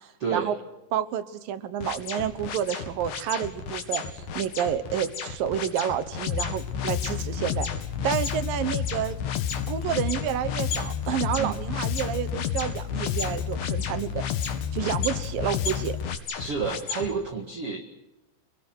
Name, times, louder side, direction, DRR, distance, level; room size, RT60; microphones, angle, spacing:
voice 1, 0.2-0.5 11.3-11.6 16.3-17.8, right 5 dB, 45° right, 3 dB, 2.2 m, -30 dB
voice 2, 0.9-7.7 8.0-9.2 9.7-14.2 14.7-16.0, right 9 dB, 65° right, 13 dB, 2.5 m, -29 dB
sound 1, 1.8-17.1, left 5 dB, 50° left, 3.1 m, -35 dB
Bass guitar, 6.3-16.2, left 10 dB, 85° left, 3.2 m, -31 dB
27.5 x 19.5 x 8.0 m, 0.94 s
omnidirectional pair, 5.0 m